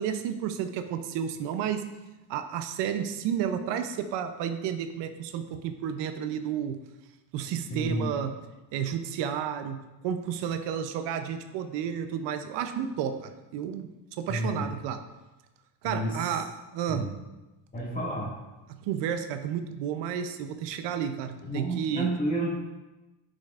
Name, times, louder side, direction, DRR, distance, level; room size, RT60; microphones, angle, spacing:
voice 1, 0.0-1.8 2.3-6.8 7.3-8.3 8.7-13.9 14.2-15.0 15.8-17.1 18.7-22.1, right 8 dB, 85° right, 8 dB, 0.7 m, -31 dB
voice 2, 7.7-8.1 14.3-14.7 15.8-16.4 16.9-17.1 17.7-18.3 21.4-22.7, right 1 dB, 20° left, -4 dB, 2.0 m, -31 dB
10.5 x 5.0 x 2.4 m, 1.1 s
cardioid pair, 140°, 41 cm